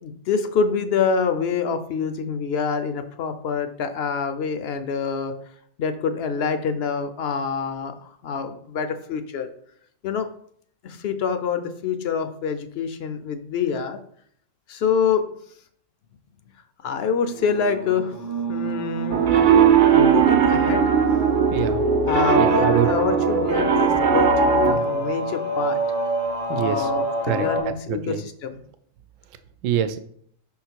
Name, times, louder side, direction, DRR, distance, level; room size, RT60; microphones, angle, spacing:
voice 1, 0.0-5.3 5.8-9.5 10.0-10.3 10.8-14.0 14.7-15.3 16.8-18.1 18.5-19.2 19.9-20.8 22.0-25.8 26.5-28.6, left 6 dB, 60° left, 9 dB, 0.7 m, -26 dB
sound 1, 17.3-27.6, equal, 85° left, 1.6 m, -28 dB
Piano, 19.1-24.7, right 7 dB, 50° right, 0.7 m, -18 dB
voice 2, 21.5-21.9 22.4-22.9 24.6-24.9 26.5-26.9 27.3-27.5 27.9-28.2 29.6-30.0, right 10 dB, 80° right, 11 dB, 1.0 m, -25 dB
5.7 x 3.8 x 4.5 m, 0.63 s
omnidirectional pair, 1.3 m